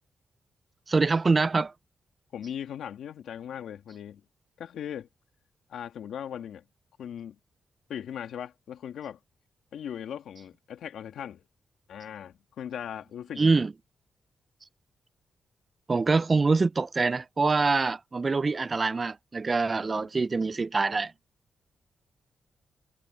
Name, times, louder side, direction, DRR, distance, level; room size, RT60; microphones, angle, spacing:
voice 1, 0.9-1.7 13.4-13.7 15.9-21.1, right 4 dB, 35° right, 0.3 m, -25 dB
voice 2, 2.3-4.2 4.6-5.1 5.7-6.6 7.0-7.4 7.9-9.2 9.7-11.4 11.9-13.6 19.8-20.1, left 9 dB, 85° left, 2.3 m, -39 dB
cardioid pair, 75°, 0 cm